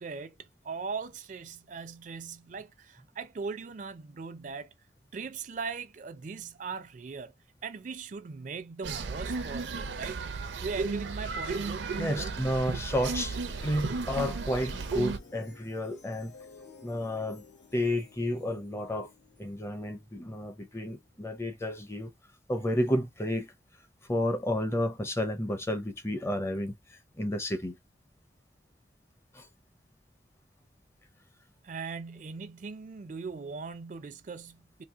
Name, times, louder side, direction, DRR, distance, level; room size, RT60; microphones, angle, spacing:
voice 1, 0.0-4.7 5.1-7.3 7.6-10.2 10.6-12.3 31.6-34.8, right 5 dB, 45° right, 0.4 m, -39 dB
sound 1, 8.8-15.2, right 4 dB, 90° right, 0.6 m, -34 dB
sound 2, 12.0-21.2, left 4 dB, 85° left, 1.0 m, -55 dB
voice 2, 12.0-16.3 16.8-17.4 17.7-19.1 19.4-22.1 22.5-23.5 24.1-27.8 29.3-29.5, left 1 dB, 15° left, 0.6 m, -31 dB
2.8 x 2.6 x 3.6 m
head